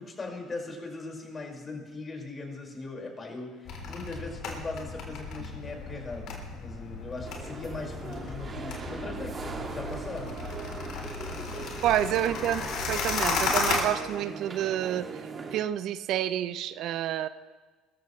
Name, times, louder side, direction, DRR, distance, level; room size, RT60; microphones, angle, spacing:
voice 1, 0.0-10.3 11.0-11.7, left 3 dB, 30° left, 0 dB, 5.5 m, -39 dB
sound 1, 3.7-13.8, left 4 dB, 60° left, 3.8 m, -34 dB
sound 2, 7.2-15.6, right 4 dB, 35° right, 2.2 m, -40 dB
voice 2, 11.8-17.3, right 11 dB, 65° right, 13 dB, 0.7 m, -29 dB
25.0 x 14.5 x 3.3 m, 1.4 s
hypercardioid pair, 65°, 0 cm